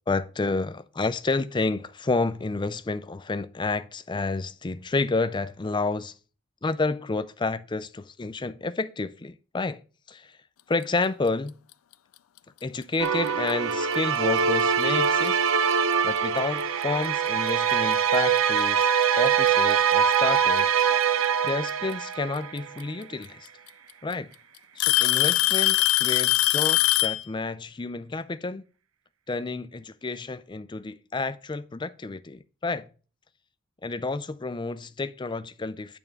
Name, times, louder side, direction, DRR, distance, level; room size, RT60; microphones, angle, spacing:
voice 1, 0.1-6.1 6.6-9.8 10.1-10.3 10.7-11.6 12.6-15.4 16.0-18.9 19.2-20.8 21.4-23.5 24.0-24.3 24.8-28.6 29.3-32.9 33.8-36.0, left 3 dB, 20° left, 0.4 m, -30 dB
sound 1, 13.0-22.8, right 7 dB, 80° right, 0.6 m, -23 dB
Alarm / Tick-tock, 13.3-13.5 14.4-14.5 15.3-15.4 17.0-17.1 18.4-18.5 19.7-20.2 21.9-22.0 23.2-23.3 23.7-24.1 24.8-27.2, left 18 dB, 90° left, 0.4 m, -22 dB
8.9 x 3.6 x 6.5 m
head